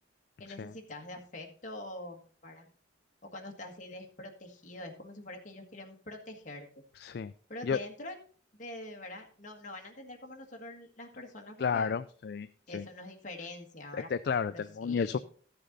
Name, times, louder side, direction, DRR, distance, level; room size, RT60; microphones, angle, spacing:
voice 1, 0.4-2.7 3.2-6.7 7.5-8.2 8.5-12.0 12.7-14.1 14.5-15.2, left 1 dB, 45° left, 2 dB, 1.7 m, -45 dB
voice 2, 7.0-7.3 7.6-7.8 11.6-12.5 12.7-12.9 13.9-15.2, left 6 dB, 60° left, 12 dB, 0.3 m, -31 dB
13.5 x 6.8 x 4.0 m, 0.44 s
head